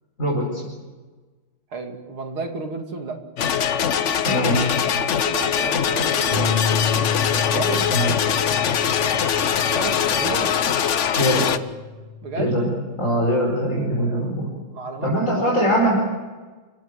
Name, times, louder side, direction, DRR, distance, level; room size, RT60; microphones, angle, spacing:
voice 1, 0.2-0.6 4.2-4.7 7.9-8.1 11.1-11.5 12.4-12.7 13.0-14.5 15.0-16.0, equal, 35° left, -2 dB, 5.2 m, -21 dB
voice 2, 1.7-3.2 5.0-6.6 7.5-8.1 8.9-10.5 12.2-12.6 13.2-14.3 14.7-15.8, right 4 dB, 70° right, 4 dB, 3.4 m, -33 dB
sound 1, 3.4-11.6, left 8 dB, 65° left, 0.7 m, -22 dB
Bass guitar, 6.3-10.8 11.2-12.6, left 5 dB, 20° left, 5.5 m, -30 dB
30.0 x 16.5 x 8.4 m, 1.3 s
omnidirectional pair, 2.4 m